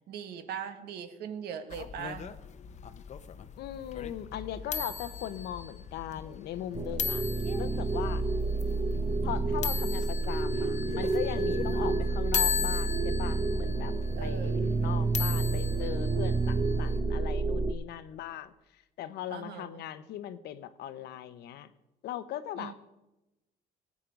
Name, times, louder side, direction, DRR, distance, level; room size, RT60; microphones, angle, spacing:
voice 1, 0.1-2.3 11.7-12.1 14.2-14.8 19.3-19.8 22.6-22.7, right 8 dB, 75° right, 8 dB, 1.5 m, -40 dB
sound 1, 1.7-17.0, left 7 dB, 45° left, 0.8 m, -38 dB
voice 2, 3.6-7.2 7.6-8.2 9.2-13.9 14.2-18.5 19.0-21.7 22.0-22.7, left 11 dB, 75° left, 13 dB, 0.9 m, -39 dB
sound 2, 6.7-17.7, right 3 dB, 30° right, 0.8 m, -29 dB
19.0 x 8.5 x 5.2 m, 1.0 s
cardioid pair, 110°, 17 cm